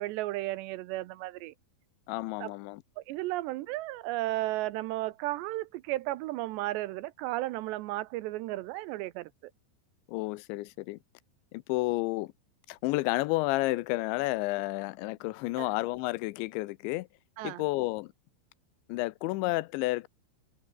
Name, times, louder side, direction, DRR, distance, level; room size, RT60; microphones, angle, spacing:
voice 1, 0.0-1.5 2.4-2.5 3.0-9.5 15.6-15.7 17.4-17.6, right 17 dB, 80° right, 2.8 m, -34 dB
voice 2, 2.1-2.8 10.1-11.0 11.5-12.3 12.7-17.1 17.4-18.1 18.9-20.1, left 20 dB, 85° left, 3.0 m, -31 dB
omnidirectional pair, 5.2 m